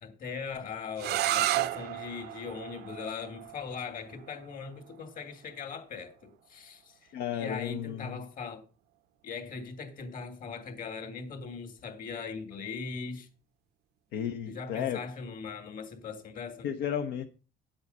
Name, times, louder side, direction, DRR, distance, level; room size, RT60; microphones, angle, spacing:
voice 1, 0.0-8.6 9.2-13.3 14.5-16.7, left 5 dB, 55° left, 2.6 m, -40 dB
sound 1, 1.0-6.7, right 15 dB, 75° right, 0.6 m, -34 dB
voice 2, 7.1-8.2 14.1-15.0 16.6-17.3, left 9 dB, 90° left, 0.9 m, -33 dB
9.9 x 7.9 x 5.5 m
cardioid pair, 110°, 17 cm